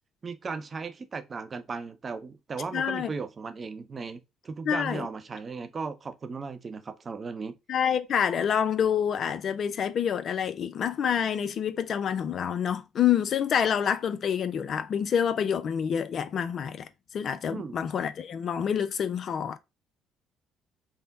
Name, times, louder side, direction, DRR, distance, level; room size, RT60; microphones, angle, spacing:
voice 1, 0.2-7.5 17.5-17.8, right 4 dB, 40° right, 0.6 m, -36 dB
voice 2, 2.7-3.1 4.7-5.1 7.7-16.9 17.1-19.6, left 8 dB, 55° left, 0.4 m, -27 dB
3.5 x 2.1 x 4.0 m
supercardioid pair, 65°, 0 cm